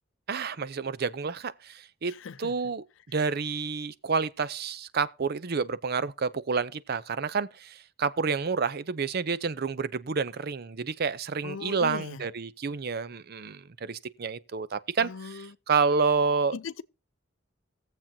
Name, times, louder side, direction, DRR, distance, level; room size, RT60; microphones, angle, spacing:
voice 1, 0.3-2.1 2.4-2.8 3.1-16.6, right 5 dB, 55° right, 0.6 m, -29 dB
voice 2, 2.1-2.5 11.4-12.2 15.0-15.5 16.5-16.8, left 5 dB, 75° left, 0.5 m, -39 dB
20.0 x 7.4 x 2.8 m
head